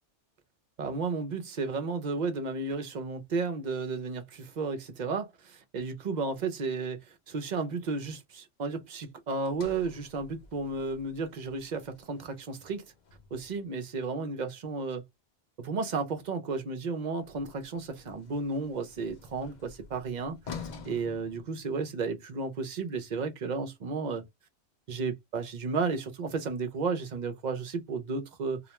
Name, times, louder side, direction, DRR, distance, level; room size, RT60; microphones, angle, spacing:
voice 1, 0.8-7.0 7.3-12.8 13.3-15.0 15.6-24.3 24.9-28.6, right 4 dB, 50° right, 0.6 m, -33 dB
Sliding door, 9.4-13.7 17.2-22.1, left 5 dB, 50° left, 0.6 m, -49 dB
2.3 x 2.2 x 2.9 m
omnidirectional pair, 1.2 m